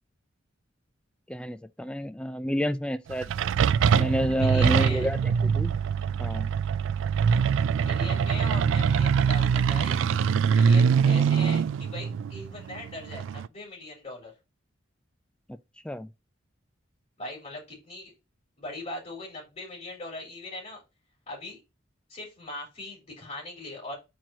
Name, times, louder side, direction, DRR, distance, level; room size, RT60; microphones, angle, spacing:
voice 1, 1.3-3.3 3.9-5.7 6.2-6.5 15.5-15.6 15.8-16.1, equal, 5° left, 0.4 m, -29 dB
sound 1, 3.1-13.5, right 6 dB, 80° right, 0.3 m, -23 dB
voice 2, 4.4-5.0 7.8-10.0 10.5-14.3 17.2-18.1 18.6-20.8 21.3-21.6 22.1-23.9, left 2 dB, 35° left, 3.5 m, -40 dB
4.5 x 4.5 x 5.1 m
head